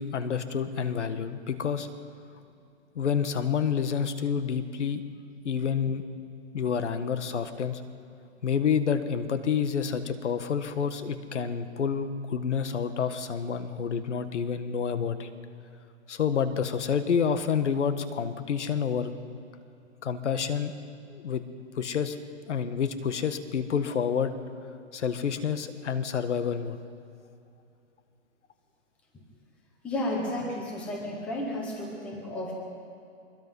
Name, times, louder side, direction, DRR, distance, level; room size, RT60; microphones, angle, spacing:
voice 1, 0.0-1.9 2.9-5.0 5.4-6.0 6.5-7.8 8.4-15.3 16.1-19.1 20.0-20.7 21.1-21.4 21.7-22.2 22.5-24.3 24.9-26.8, left 7 dB, 65° left, 10 dB, 1.6 m, -28 dB
voice 2, 29.8-32.6, left 1 dB, 5° left, -1 dB, 0.8 m, -32 dB
23.5 x 21.5 x 5.5 m, 2.6 s
hypercardioid pair, 180°, 38 cm